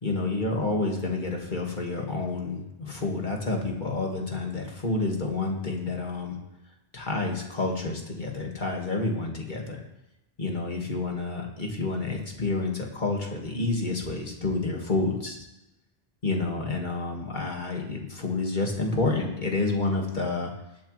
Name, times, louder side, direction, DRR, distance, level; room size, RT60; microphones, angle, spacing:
voice 1, 0.0-6.4 6.9-9.8 10.4-15.4 16.2-20.5, left 3 dB, 50° left, 0 dB, 2.2 m, -29 dB
19.0 x 8.2 x 3.3 m, 0.92 s
omnidirectional pair, 1.0 m